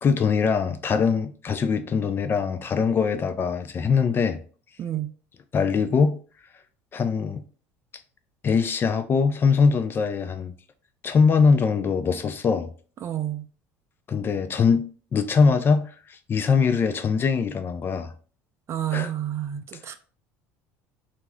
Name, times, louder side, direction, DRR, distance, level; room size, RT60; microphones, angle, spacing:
voice 1, 0.0-4.4 5.5-6.2 6.9-7.4 8.4-10.5 11.0-12.7 14.1-14.9 15.1-18.1 18.9-19.1, left 5 dB, 35° left, 0.3 m, -22 dB
voice 2, 4.8-5.1 13.0-13.5 18.7-20.0, right 12 dB, 40° right, 0.4 m, -29 dB
2.4 x 2.1 x 3.5 m
supercardioid pair, 95°, 7 cm